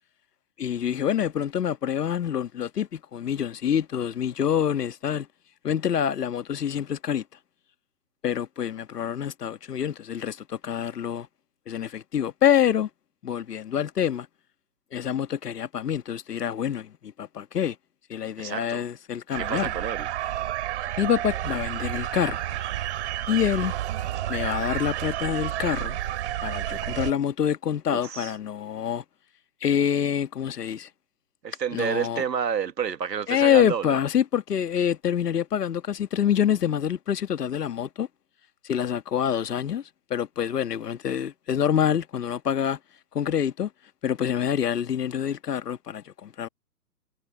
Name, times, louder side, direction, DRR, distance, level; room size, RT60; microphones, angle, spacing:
voice 1, 0.6-5.3 5.6-7.2 8.2-11.3 11.7-12.9 13.2-14.3 14.9-17.7 18.1-19.7 21.0-22.4 23.3-23.7 24.3-26.0 26.4-29.0 29.6-30.9 31.7-32.2 33.3-38.1 38.6-39.8 40.1-42.8 43.1-43.7 44.0-46.5, left 9 dB, 70° left, 1.5 m, -26 dB
voice 2, 18.4-18.8 19.3-20.1 27.9-28.3 31.4-34.0, right 7 dB, 85° right, 1.8 m, -29 dB
sound 1, 19.3-27.1, right 13 dB, 45° right, 2.5 m, -30 dB
hypercardioid pair, 145°, 49 cm